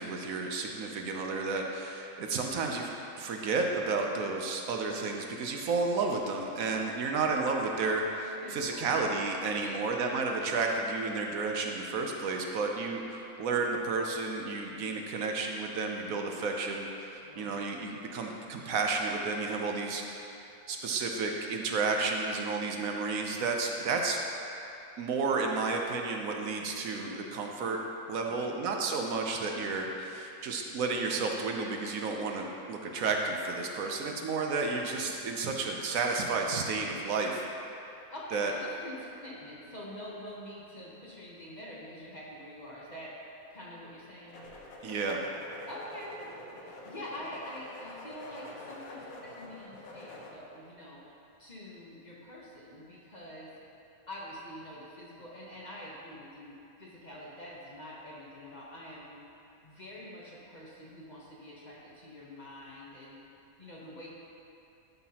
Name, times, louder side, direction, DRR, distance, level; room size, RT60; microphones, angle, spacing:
voice 1, 0.0-2.9 3.2-20.3 20.7-24.2 25.0-27.8 28.1-37.5 38.3-38.5 44.8-45.2, right 4 dB, 70° right, 2 dB, 1.1 m, -32 dB
voice 2, 6.7-7.2 8.4-9.0 9.5-9.9 17.2-17.9 28.2-28.6 37.9-43.1 43.5-44.5 45.7-46.2 46.6-51.0 51.4-53.5 54.1-59.3 59.6-63.2 63.6-64.1, left 1 dB, 35° left, -5 dB, 1.0 m, -46 dB
sound 1, 44.3-50.3, left 2 dB, 70° left, 1.3 m, -47 dB
12.0 x 5.8 x 2.9 m, 2.7 s
omnidirectional pair, 1.6 m